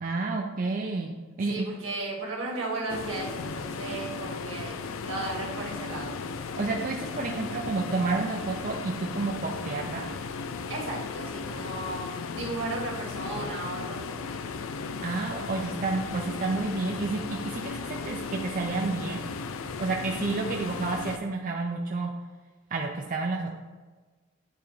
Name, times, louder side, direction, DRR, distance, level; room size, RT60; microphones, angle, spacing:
voice 1, 0.0-1.7 6.6-10.1 15.0-19.2 19.8-22.1 22.7-23.5, right 3 dB, 45° right, 0 dB, 0.5 m, -30 dB
voice 2, 1.5-4.8 5.0-6.2 10.7-14.2, right 2 dB, 80° right, -3 dB, 1.8 m, -35 dB
sound 1, 2.9-21.2, left 4 dB, 80° left, 0.4 m, -36 dB
9.1 x 3.4 x 3.3 m, 1.3 s
head